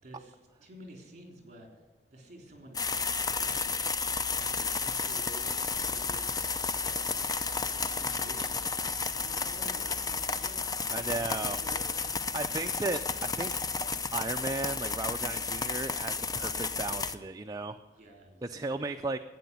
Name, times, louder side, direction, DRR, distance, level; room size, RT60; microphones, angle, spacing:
voice 1, 0.0-1.8 2.1-3.8 4.3-7.1 7.6-8.6 9.1-10.6 11.1-12.0 12.3-12.8 17.9-18.8, right 1 dB, 45° right, 3 dB, 3.7 m, -50 dB
sound 1, 2.7-17.1, left 4 dB, 20° left, 0.6 m, -32 dB
voice 2, 10.9-11.6 12.3-13.6 14.1-17.8 18.4-19.2, right 3 dB, 20° right, 6 dB, 0.5 m, -35 dB
12.0 x 9.3 x 9.6 m, 1.2 s
head